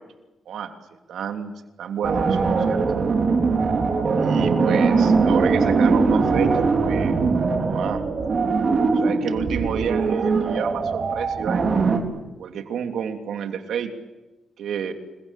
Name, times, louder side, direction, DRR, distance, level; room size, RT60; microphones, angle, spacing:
voice 1, 0.5-0.8 1.1-1.5 1.8-2.8 4.2-7.2 7.6-8.0 8.9-11.7 12.4-13.9 14.6-14.9, right 7 dB, 80° right, 6 dB, 3.2 m, -29 dB
sound 1, 2.0-12.0, right 4 dB, 40° right, 4.5 m, -21 dB
29.5 x 23.0 x 8.5 m, 1.1 s
cardioid pair, 130°, 0 cm